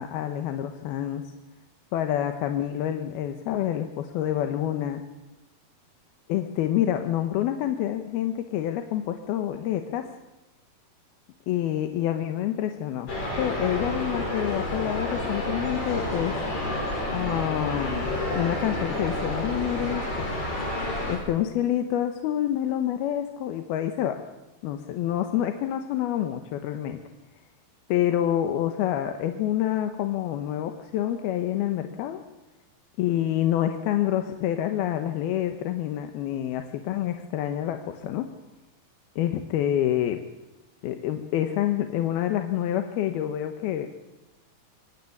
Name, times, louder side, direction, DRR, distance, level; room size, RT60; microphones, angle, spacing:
voice 1, 0.0-1.3 1.9-5.0 6.3-10.1 11.5-13.1 13.4-16.4 17.1-20.3 21.1-24.2 24.6-27.0 27.9-32.2 33.0-38.3 39.2-40.2 40.8-43.9, left 11 dB, 85° left, 6 dB, 3.0 m, -27 dB
sound 1, 13.1-21.2, left 1 dB, 40° left, 6.2 m, -29 dB
24.0 x 19.0 x 8.4 m, 1.0 s
omnidirectional pair, 4.4 m